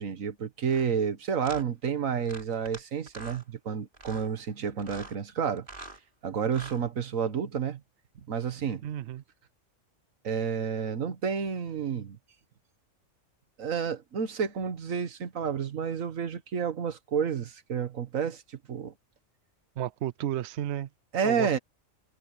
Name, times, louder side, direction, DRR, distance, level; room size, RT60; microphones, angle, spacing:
voice 1, 0.0-5.7 6.2-7.8 8.3-8.8 10.2-12.2 13.6-18.9 21.1-21.6, right 7 dB, 85° right, 1.7 m, -30 dB
sound 1, 0.7-0.9 1.4-1.6 2.3-2.8 3.1-3.4 3.9-4.3 4.8-5.2 5.6-6.0 6.5-6.8, right 2 dB, 40° right, 3.0 m, -44 dB
voice 2, 8.8-9.2 19.8-20.9 21.2-21.6, right 11 dB, 65° right, 0.8 m, -33 dB
omnidirectional pair, 1.4 m